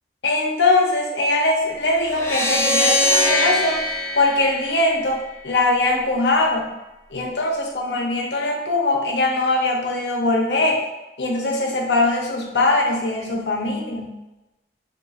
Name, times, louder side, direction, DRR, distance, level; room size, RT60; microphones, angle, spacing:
voice 1, 0.2-3.8 4.2-6.7 7.1-10.8 11.2-14.2, left 2 dB, 85° left, 0 dB, 0.7 m, -21 dB
sound 1, 2.1-5.4, left 1 dB, 15° left, 0.4 m, -22 dB
5.2 x 2.4 x 2.4 m, 1.0 s
head